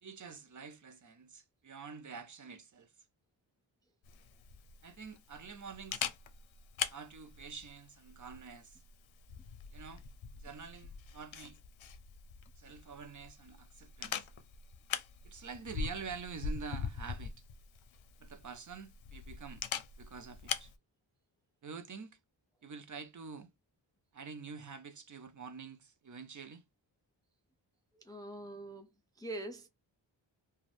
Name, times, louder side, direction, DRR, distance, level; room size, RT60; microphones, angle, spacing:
voice 1, 0.0-2.9 4.8-6.1 6.9-8.8 9.7-10.0 10.4-11.6 12.6-14.3 15.2-17.4 18.2-19.6 20.0-20.7 21.6-22.2 22.6-23.5 24.1-26.6, right 5 dB, 40° right, 0.5 m, -47 dB
Camera, 4.0-20.7, left 7 dB, 80° left, 0.6 m, -43 dB
voice 2, 27.9-28.9 29.2-29.7, right 1 dB, 10° left, 0.3 m, -43 dB
2.5 x 2.3 x 3.2 m
wide cardioid pair, 105°, 46 cm